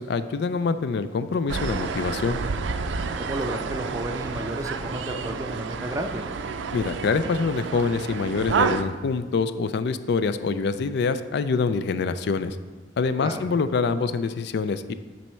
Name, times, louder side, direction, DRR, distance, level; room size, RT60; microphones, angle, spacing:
voice 1, 0.0-2.4 6.7-12.6 13.0-14.9, left 4 dB, 65° left, 12 dB, 0.4 m, -25 dB
sound 1, 1.5-8.8, right 5 dB, 75° right, 0.4 m, -29 dB
voice 2, 3.2-6.2 13.2-13.4, right 1 dB, 20° right, 5 dB, 0.5 m, -32 dB
7.5 x 4.1 x 5.6 m, 1.3 s
head